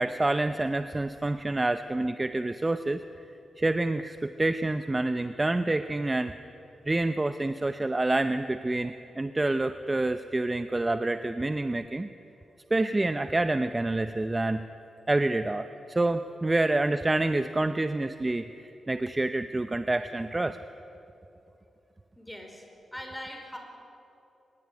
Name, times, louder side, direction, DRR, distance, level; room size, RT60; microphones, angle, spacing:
voice 1, 0.0-3.0 3.6-6.3 6.9-12.1 12.7-14.7 15.1-20.6, right 2 dB, 20° right, 10 dB, 0.7 m, -27 dB
voice 2, 22.2-22.6 22.9-23.6, left 1 dB, 5° left, 3 dB, 4.9 m, -40 dB
24.5 x 21.0 x 9.7 m, 2.8 s
wide cardioid pair, 105°, 0 cm